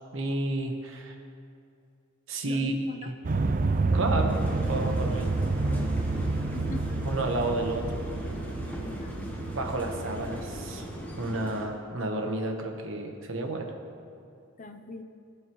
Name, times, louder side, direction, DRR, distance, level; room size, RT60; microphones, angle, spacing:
voice 1, 0.1-1.2 2.3-2.7 3.0-3.1 3.9-4.4 4.7-5.3 7.1-8.0 9.5-10.8 11.2-13.7, right 2 dB, 65° right, 3 dB, 1.2 m, -31 dB
voice 2, 2.5-3.1 6.5-7.0 8.8-9.4 14.6-15.0, left 2 dB, 35° left, 6 dB, 0.6 m, -41 dB
sound 1, 3.2-11.7, right 3 dB, 40° right, 0.4 m, -29 dB
sound 2, 4.3-11.7, left 1 dB, 10° left, 1.2 m, -40 dB
19.0 x 9.2 x 3.1 m, 2.5 s
head